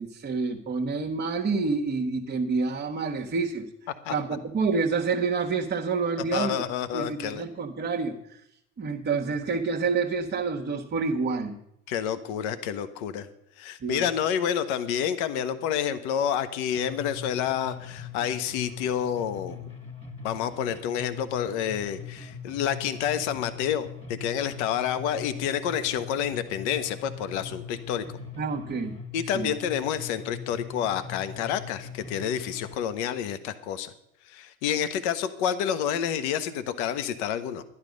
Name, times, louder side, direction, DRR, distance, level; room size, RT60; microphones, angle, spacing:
voice 1, 0.0-3.7 4.1-6.6 6.9-8.4 8.8-11.6 13.8-14.0 28.4-29.0 29.3-29.5, right 4 dB, 30° right, -1 dB, 1.3 m, -28 dB
voice 2, 6.3-7.4 11.9-13.3 13.6-19.7 20.2-28.1 29.1-33.9 34.3-37.6, left 9 dB, 65° left, 11 dB, 1.2 m, -29 dB
sound 1, 16.7-32.7, left 6 dB, 15° left, 2.1 m, -41 dB
11.5 x 11.0 x 5.2 m, 0.77 s
hypercardioid pair, 90°, 37 cm